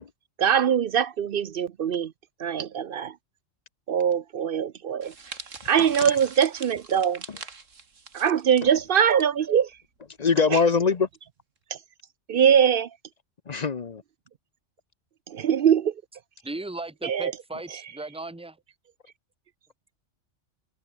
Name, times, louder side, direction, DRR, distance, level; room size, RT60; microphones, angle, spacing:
voice 1, 0.4-2.1 2.4-3.1 3.9-5.1 5.6-7.2 8.1-9.7 10.5-10.6 11.7-11.8 12.3-12.9 15.3-15.9 17.0-17.3 17.7-17.8, right 8 dB, 60° right, 0.7 m, -22 dB
sound 1, 5.0-9.3 9.5-9.8 10.7-10.9, right 4 dB, 85° right, 2.6 m, -42 dB
voice 2, 10.2-11.1 13.5-14.0, left 5 dB, 40° left, 0.7 m, -23 dB
voice 3, 16.4-18.6, right 2 dB, 5° right, 1.4 m, -36 dB
omnidirectional pair, 1.3 m